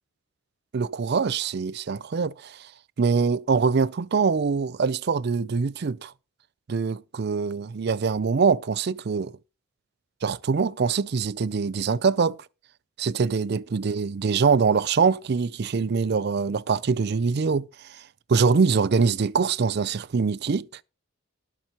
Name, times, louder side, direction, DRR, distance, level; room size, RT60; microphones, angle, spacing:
voice 1, 0.7-2.7 3.0-6.1 6.7-9.3 10.2-12.4 13.0-18.0 18.3-20.7, right 5 dB, 50° right, 0.4 m, -24 dB
19.0 x 7.4 x 2.9 m
head